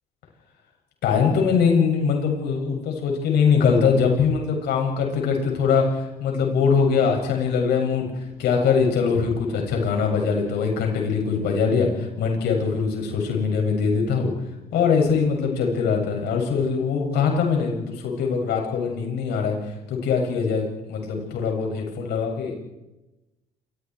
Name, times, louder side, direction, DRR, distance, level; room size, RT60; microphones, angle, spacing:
voice 1, 1.0-14.3 14.7-22.5, left 5 dB, 75° left, 1 dB, 7.6 m, -22 dB
28.0 x 23.5 x 4.8 m, 0.99 s
cardioid pair, 110°, 17 cm